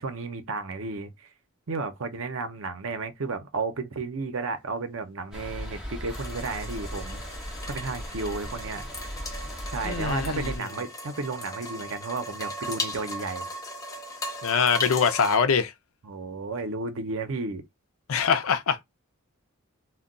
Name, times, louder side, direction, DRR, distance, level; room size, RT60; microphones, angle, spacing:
voice 1, 0.0-1.3 1.7-7.2 7.7-8.8 9.7-13.5 16.0-17.6, right 3 dB, 70° right, 0.6 m, -33 dB
sound 1, 5.3-10.6, equal, 5° right, 1.0 m, -37 dB
sound 2, 6.1-15.4, left 1 dB, 15° left, 0.6 m, -37 dB
voice 2, 9.8-10.5 14.4-15.7 18.1-18.8, left 6 dB, 80° left, 0.5 m, -23 dB
2.2 x 2.2 x 3.7 m
head